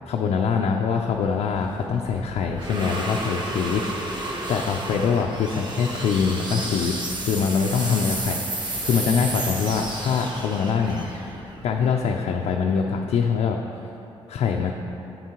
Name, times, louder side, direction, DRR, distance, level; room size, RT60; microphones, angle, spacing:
voice 1, 0.1-3.8 4.5-11.2 11.6-13.6 14.3-14.7, left 6 dB, 75° left, 1 dB, 0.5 m, -24 dB
sound 1, 1.1-12.3, right 1 dB, 45° right, 1.1 m, -32 dB
9.2 x 7.4 x 3.0 m, 2.9 s
cardioid pair, 80°, 11 cm